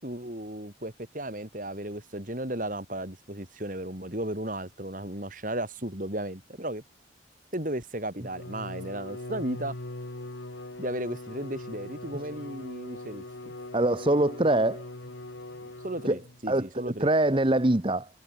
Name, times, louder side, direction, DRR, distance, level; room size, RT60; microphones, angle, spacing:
voice 1, 0.0-6.8 7.5-9.7 10.8-13.5 15.8-17.1, right 1 dB, 45° right, 4.6 m, -35 dB
Bowed string instrument, 8.2-16.5, left 2 dB, 80° left, 2.2 m, -41 dB
voice 2, 13.7-14.8 16.1-16.2 16.5-18.1, right 1 dB, 25° right, 1.1 m, -24 dB
head